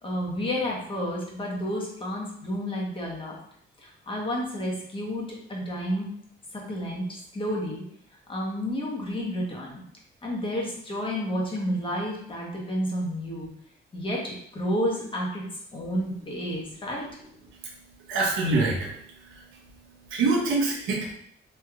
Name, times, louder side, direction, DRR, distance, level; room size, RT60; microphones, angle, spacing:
voice 1, 0.0-3.3 3.8-6.1 6.5-7.8 8.3-9.8 10.2-13.5 13.9-15.4 15.7-17.1, equal, 25° left, -3 dB, 1.1 m, -30 dB
voice 2, 18.1-18.9 20.1-21.2, right 3 dB, 85° right, -1 dB, 0.9 m, -24 dB
3.3 x 3.1 x 2.4 m, 0.67 s
cardioid pair, 90°, 20 cm